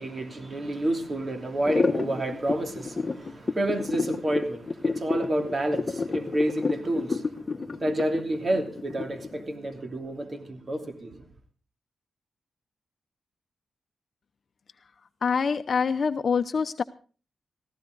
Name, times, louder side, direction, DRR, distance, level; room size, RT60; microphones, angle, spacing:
voice 1, 0.0-11.2, right 1 dB, 40° right, 3.0 m, -29 dB
sound 1, 1.6-9.4, left 4 dB, 35° left, 1.3 m, -29 dB
voice 2, 15.2-16.8, left 6 dB, 55° left, 0.7 m, -25 dB
17.5 x 15.0 x 4.0 m
cardioid pair, 70°, 0 cm